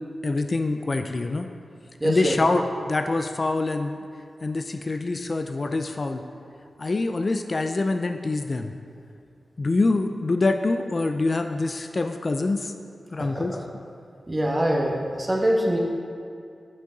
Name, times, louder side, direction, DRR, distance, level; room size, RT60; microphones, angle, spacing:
voice 1, 0.2-1.5 2.0-4.0 4.4-6.2 6.8-8.7 9.6-12.7 13.1-13.6, left 3 dB, 50° left, 7 dB, 0.3 m, -25 dB
voice 2, 2.0-2.4 13.2-13.6 14.3-15.8, right 1 dB, 30° right, -1 dB, 1.1 m, -24 dB
7.7 x 5.4 x 3.9 m, 2.4 s
cardioid pair, 40°, 0 cm